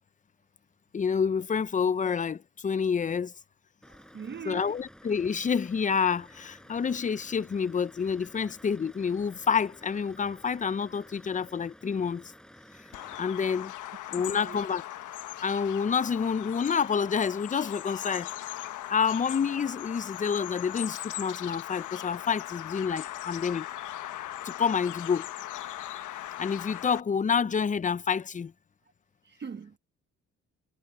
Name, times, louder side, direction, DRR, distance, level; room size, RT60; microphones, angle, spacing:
voice 1, 0.9-3.3 4.5-12.3 13.2-13.7 14.1-14.8 15.4-18.3 18.9-23.7 24.4-25.3 26.4-28.5, left 6 dB, 25° left, 0.6 m, -28 dB
Truck, 3.8-13.2, equal, ahead, 6.4 m, -53 dB
voice 2, 3.9-4.8 14.0-14.7 29.2-29.8, right 6 dB, 35° right, 1.0 m, -42 dB
Bird vocalization bird call bird song, 12.9-27.0, left 13 dB, 80° left, 1.2 m, -39 dB
cardioid pair, 90°, 30 cm